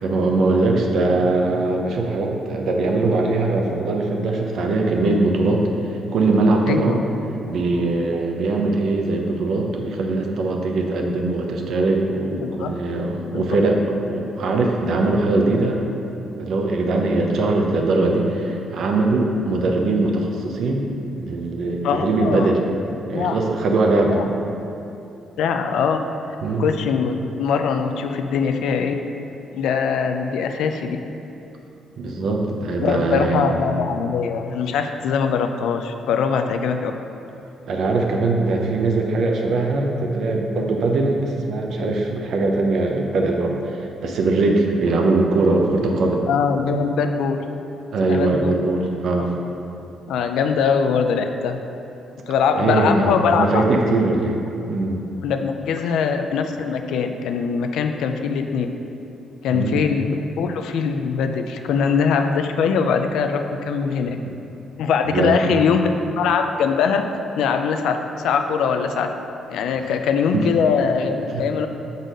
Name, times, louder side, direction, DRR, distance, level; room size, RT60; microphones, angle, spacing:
voice 1, 0.0-7.0 7.4-13.8 14.1-15.8 16.4-20.8 21.2-22.6 23.1-24.2 26.4-26.6 32.0-33.6 37.7-46.2 47.9-49.3 52.5-54.4 54.7-55.0 59.5-59.8 65.1-65.5 70.3-70.4 71.3-71.4, right 2 dB, 65° right, 1 dB, 0.8 m, -21 dB
voice 2, 6.7-7.0 12.4-12.7 13.3-13.4 21.8-22.5 23.1-23.4 24.1-24.2 25.4-26.0 26.6-29.0 29.5-31.0 32.8-36.9 46.3-47.4 48.1-48.5 49.2-49.3 50.1-51.6 52.3-53.6 55.2-58.7 59.4-64.1 64.8-65.8 66.2-67.0 67.4-69.1 69.5-71.7, left 6 dB, 80° left, 6 dB, 0.4 m, -22 dB
6.4 x 4.0 x 5.2 m, 2.8 s
cardioid pair, 90°, 0 cm